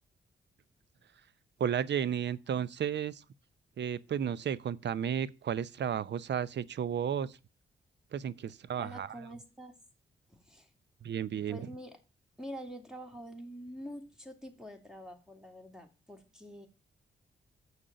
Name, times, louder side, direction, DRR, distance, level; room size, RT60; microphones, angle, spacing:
voice 1, 1.6-3.2 3.8-7.4 8.1-9.1 11.0-11.6, right 8 dB, 60° right, 0.7 m, -33 dB
voice 2, 8.8-9.8 10.3-10.7 11.5-12.0 12.4-16.7, equal, 5° right, 3.0 m, -46 dB
7.2 x 6.2 x 7.8 m
supercardioid pair, 45°, 21 cm